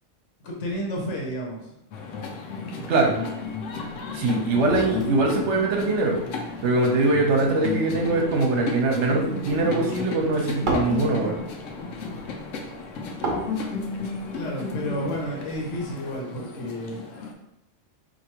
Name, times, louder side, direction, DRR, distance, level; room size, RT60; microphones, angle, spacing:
voice 1, 0.4-1.7 14.3-17.0, equal, 70° left, -2 dB, 1.2 m, -31 dB
sound 1, 1.9-17.3, left 4 dB, 90° left, 1.0 m, -33 dB
sound 2, 3.0-15.9, right 2 dB, 45° right, 0.8 m, -37 dB
voice 2, 4.1-6.2 6.6-11.4, right 2 dB, 70° right, 0 dB, 1.0 m, -22 dB
4.5 x 2.7 x 2.9 m, 0.84 s
omnidirectional pair, 1.3 m